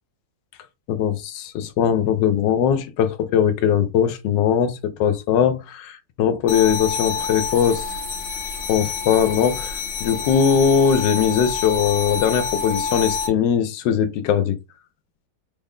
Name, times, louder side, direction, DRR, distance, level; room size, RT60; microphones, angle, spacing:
voice 1, 0.9-7.9 8.7-14.6, left 8 dB, 90° left, 1.3 m, -20 dB
bell noise, 6.5-13.3, left 5 dB, 65° left, 0.7 m, -27 dB
3.7 x 2.1 x 3.6 m
omnidirectional pair, 1.9 m